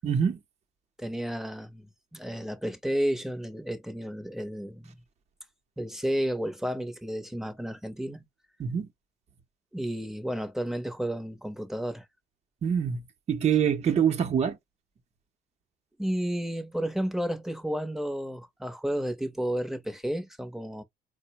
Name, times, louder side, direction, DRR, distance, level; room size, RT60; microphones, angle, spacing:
voice 1, 0.0-0.4 8.6-8.9 12.6-13.0 13.3-14.6, right 8 dB, 40° right, 0.8 m, -25 dB
voice 2, 1.0-4.9 5.8-8.3 9.7-12.0 16.0-20.8, equal, ahead, 0.9 m, -32 dB
4.2 x 2.1 x 2.9 m
cardioid pair, 110°, 17 cm